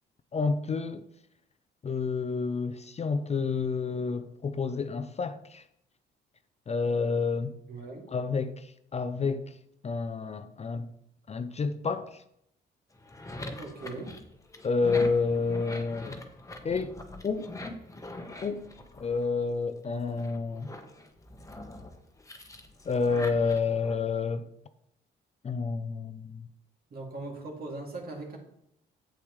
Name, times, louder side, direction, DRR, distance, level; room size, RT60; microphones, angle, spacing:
voice 1, 0.3-1.0 1.8-5.6 6.7-7.6 8.1-9.6 9.8-10.9 11.3-12.2 14.6-16.2 16.6-17.0 17.2-17.5 18.4-18.7 19.0-20.7 22.9-24.5 25.4-26.5, left 4 dB, 35° left, 0.5 m, -29 dB
voice 2, 7.7-8.1 13.6-14.2 26.9-28.4, right 2 dB, 50° right, 2.5 m, -39 dB
sound 1, 12.9-19.6 20.0-23.9, left 2 dB, 15° left, 1.1 m, -43 dB
8.4 x 7.7 x 3.2 m
cardioid pair, 90°, 20 cm